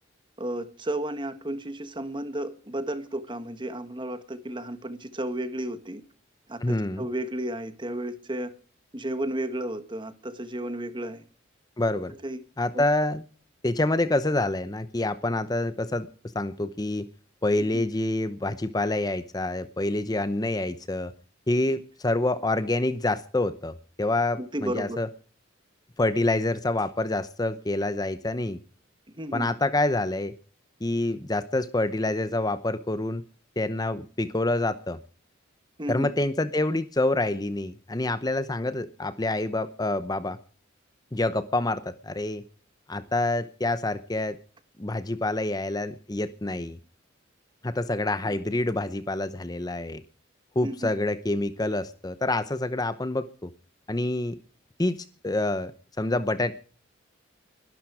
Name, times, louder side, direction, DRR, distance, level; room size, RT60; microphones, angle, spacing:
voice 1, 0.4-6.0 6.5-8.5 8.9-11.2 12.2-12.4 12.7-12.9 24.4-25.0 29.2-29.5 35.8-36.1 48.2-48.4 50.6-50.9, right 1 dB, 25° right, 11 dB, 1.5 m, -33 dB
voice 2, 6.6-7.1 11.8-12.1 12.6-13.2 13.6-16.1 16.3-17.1 17.4-21.1 21.5-25.1 26.0-28.6 29.3-30.3 30.8-33.2 33.6-35.0 35.9-40.4 41.1-42.4 42.9-44.4 44.8-46.8 47.6-50.0 50.6-53.5 53.9-54.4 54.8-55.0 55.2-55.7 56.0-56.5, left 2 dB, 20° left, 13 dB, 0.7 m, -27 dB
22.0 x 12.5 x 4.9 m, 0.41 s
head